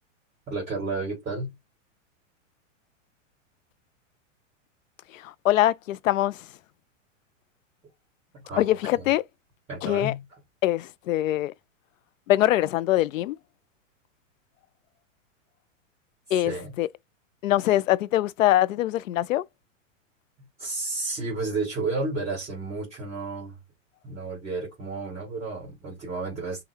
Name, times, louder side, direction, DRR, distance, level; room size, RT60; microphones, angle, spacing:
voice 1, 0.5-1.6 8.3-9.1 9.7-10.3 16.3-16.8 20.6-23.6 24.0-26.6, right 3 dB, 15° right, 2.1 m, -32 dB
voice 2, 5.2-6.4 8.6-9.2 9.8-10.1 10.6-11.5 12.3-13.4 16.3-16.9 17.4-19.4, left 14 dB, 90° left, 0.5 m, -23 dB
5.6 x 2.3 x 2.9 m
supercardioid pair, 160°, 38 cm